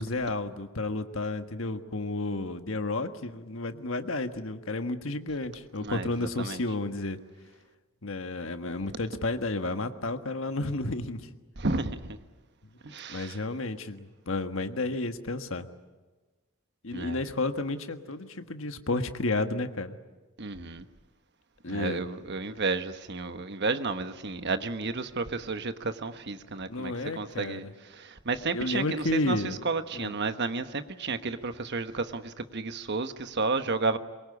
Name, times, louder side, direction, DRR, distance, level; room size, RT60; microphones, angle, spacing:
voice 1, 0.0-7.2 8.0-11.3 13.1-15.7 16.8-20.0 21.6-22.0 26.7-27.7 28.5-29.6 29.9-30.1, left 2 dB, 65° left, 1.5 m, -32 dB
voice 2, 5.8-6.6 11.6-12.2 12.8-13.4 16.9-17.2 20.4-20.8 21.7-27.7 27.9-29.4 29.6-34.0, right 3 dB, 55° right, 1.3 m, -32 dB
23.0 x 22.5 x 9.7 m
head